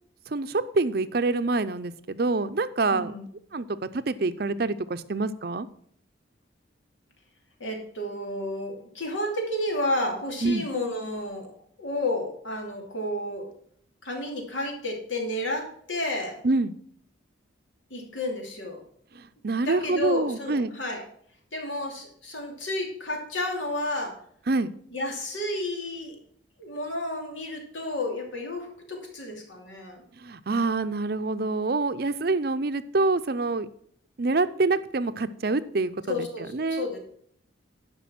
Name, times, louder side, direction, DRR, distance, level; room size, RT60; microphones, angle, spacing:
voice 1, 0.3-3.1 3.5-3.7 3.9-5.7 10.4-10.6 16.4-16.7 19.4-20.7 24.5-24.7 30.2-33.7 34.2-36.2 36.5-36.9, right 3 dB, 55° right, 12 dB, 0.5 m, -26 dB
voice 2, 2.9-3.2 7.6-11.5 11.8-13.5 14.0-16.4 17.9-18.8 19.6-21.0 21.5-24.2 24.9-26.2 26.6-30.0 36.1-37.0, left 1 dB, 85° left, 2 dB, 2.7 m, -31 dB
11.5 x 5.4 x 6.0 m, 0.63 s
head